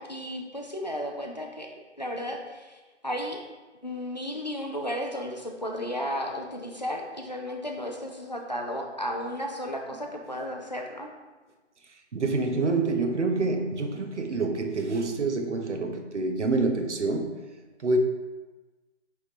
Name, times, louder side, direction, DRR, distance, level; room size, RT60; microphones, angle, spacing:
voice 1, 0.0-3.4 3.8-11.1, equal, 35° left, 1 dB, 0.5 m, -34 dB
voice 2, 11.9-17.3 17.8-18.0, right 3 dB, 70° right, 4 dB, 1.0 m, -27 dB
9.5 x 3.7 x 2.9 m, 1.2 s
figure-of-eight pair, 175°, 36 cm